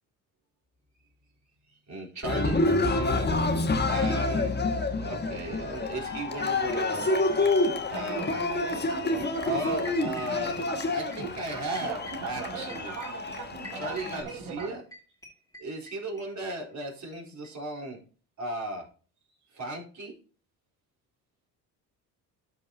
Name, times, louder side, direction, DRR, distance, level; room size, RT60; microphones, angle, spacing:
voice 1, 1.7-3.3 3.9-4.6 5.0-7.1 7.9-8.3 9.0-10.6 10.9-13.1 13.7-14.8 15.6-18.0 18.4-18.9 19.5-20.1, right 1 dB, 40° right, -2 dB, 4.1 m, -36 dB
Cheering, 2.2-14.2, left 2 dB, 20° left, 1.3 m, -28 dB
sound 1, 5.1-5.2 5.4-5.5 5.7-7.4 7.6-16.9 17.1-17.2 17.4-17.5 17.8-17.9, equal, 5° left, 2.6 m, -48 dB
sound 2, 7.7-14.7, right 6 dB, 75° right, 2.1 m, -39 dB
12.5 x 5.2 x 2.8 m, 0.39 s
hypercardioid pair, 65°, 46 cm